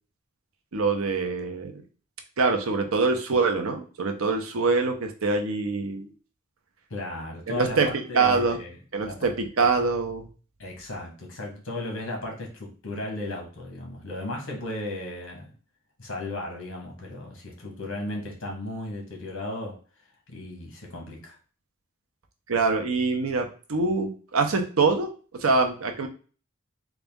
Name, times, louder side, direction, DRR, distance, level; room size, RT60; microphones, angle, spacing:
voice 1, 0.7-1.8 2.4-6.1 7.5-8.6 8.9-10.3 22.5-26.1, right 4 dB, 70° right, 5 dB, 0.7 m, -24 dB
voice 2, 6.9-8.8 9.0-9.3 10.6-15.5 16.0-19.8 20.3-21.4, left 2 dB, 60° left, 0 dB, 1.4 m, -35 dB
4.0 x 2.4 x 3.5 m, 0.38 s
head